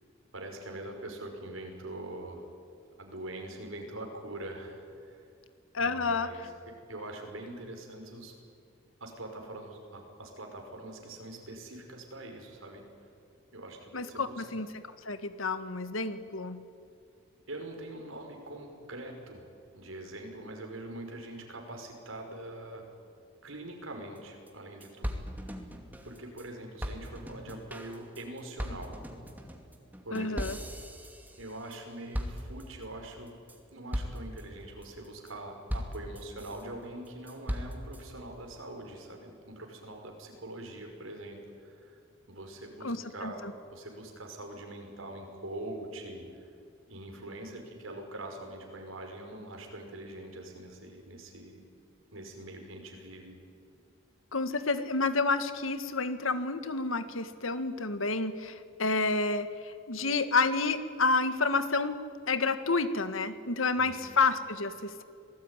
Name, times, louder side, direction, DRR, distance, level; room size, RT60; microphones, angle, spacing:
voice 1, 0.3-2.5 3.0-5.2 5.8-8.3 9.0-12.8 13.5-14.4 17.5-19.5 19.7-22.8 23.4-25.6 26.0-28.9 30.0-30.5 31.4-33.4 33.7-42.0 42.3-46.4 46.9-51.6 52.1-53.4 63.7-64.1, right 1 dB, 90° right, 3 dB, 5.5 m, -43 dB
voice 2, 5.7-6.3 13.9-14.7 15.1-16.6 30.1-30.6 42.8-43.0 43.2-43.3 54.3-62.0 62.3-65.0, left 3 dB, 85° left, 11 dB, 1.8 m, -29 dB
sound 1, 24.2-24.3 24.5-24.6 24.8-26.5 26.8-31.8 32.1-32.8 33.3-33.6 33.9-34.4 34.8-35.3 35.7-36.6 37.1-38.0, equal, 10° right, 2.4 m, -38 dB
26.5 x 19.0 x 9.9 m, 2.3 s
head